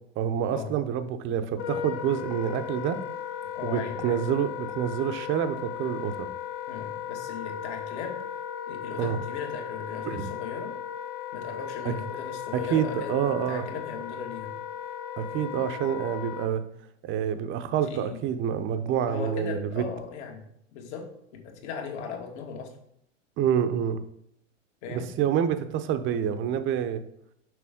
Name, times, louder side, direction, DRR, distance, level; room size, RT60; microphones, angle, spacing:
voice 1, 0.2-3.0 3.6-6.3 9.0-9.2 10.1-10.3 11.9-12.0 12.5-13.6 15.2-16.6 17.0-19.8 23.4-24.0 24.9-27.0, right 9 dB, 30° right, 10 dB, 0.7 m, -27 dB
Wind instrument woodwind instrument, 1.5-16.5, left 9 dB, 35° left, 0.6 m, -36 dB
voice 2, 3.5-4.2 6.7-8.2 8.7-10.8 11.3-14.5 17.9-18.2 19.1-20.4 20.7-22.7 24.8-25.1, left 6 dB, 60° left, 3 dB, 1.7 m, -37 dB
6.1 x 5.6 x 3.6 m, 0.73 s
hypercardioid pair, 110°, 37 cm